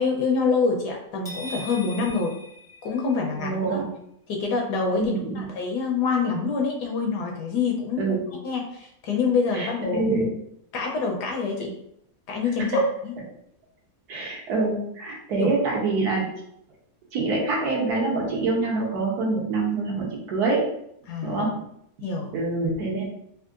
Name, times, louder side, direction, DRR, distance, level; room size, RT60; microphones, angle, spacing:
voice 1, 0.0-2.3 2.8-3.8 4.3-8.2 8.4-10.0 10.7-11.7 12.3-13.1 15.4-15.5 21.1-21.4 22.0-22.3, left 4 dB, 75° left, 0 dB, 1.1 m, -26 dB
sound 1, 1.2-3.4, equal, 5° left, 0.6 m, -40 dB
voice 2, 3.4-3.9 5.0-5.5 8.0-8.2 9.5-10.3 12.6-12.9 14.1-16.3 17.1-20.6 21.2-21.6 22.3-23.1, right 3 dB, 65° right, -3 dB, 1.2 m, -25 dB
3.5 x 2.4 x 2.4 m, 0.72 s
omnidirectional pair, 1.9 m